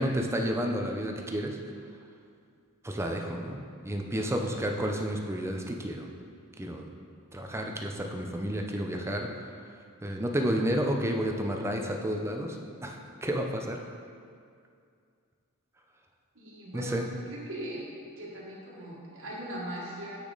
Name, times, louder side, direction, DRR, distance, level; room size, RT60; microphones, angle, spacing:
voice 1, 0.0-1.6 2.8-6.1 6.6-6.9 7.3-9.3 10.0-13.8 16.7-17.1, equal, 10° right, 2 dB, 0.6 m, -31 dB
voice 2, 16.3-17.0 17.3-17.8 18.2-20.2, right 1 dB, 65° right, -5 dB, 1.6 m, -39 dB
8.3 x 6.2 x 4.0 m, 2.3 s
head